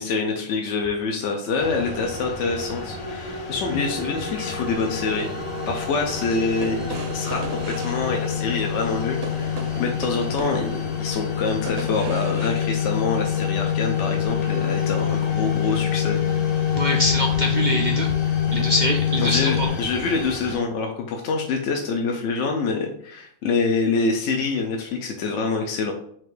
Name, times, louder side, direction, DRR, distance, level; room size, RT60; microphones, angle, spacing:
voice 1, 0.0-5.3 5.7-16.2 19.2-25.9, left 4 dB, 70° left, 2 dB, 0.9 m, -26 dB
sound 1, 1.6-20.6, left 2 dB, 40° left, 0.6 m, -34 dB
sound 2, 3.7-19.7, left 10 dB, 85° left, 1.4 m, -26 dB
sound 3, 5.0-13.5 14.2-14.4, right 3 dB, 55° right, 0.8 m, -38 dB
voice 2, 16.7-18.1 18.5-19.7, equal, 75° right, 1 dB, 0.4 m, -24 dB
4.3 x 2.5 x 4.8 m, 0.65 s
omnidirectional pair, 1.4 m